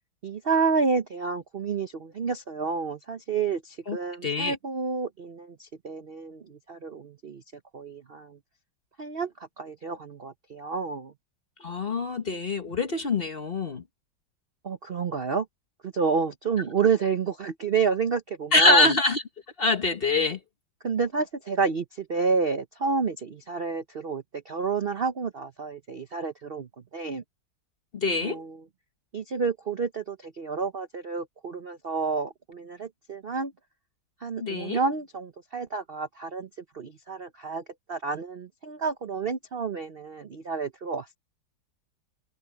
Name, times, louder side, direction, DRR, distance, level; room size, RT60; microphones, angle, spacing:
voice 1, 0.2-7.4 7.7-8.4 9.0-11.1 14.6-15.5 15.8-18.9 20.8-27.2 28.2-28.6 29.1-33.5 34.2-36.5 36.7-41.2, right 5 dB, 50° right, 0.7 m, -29 dB
voice 2, 4.2-4.6 11.6-13.8 18.5-19.2 19.6-20.4 27.9-28.4 34.4-34.8, left 3 dB, 35° left, 1.2 m, -24 dB
omnidirectional pair, 2.0 m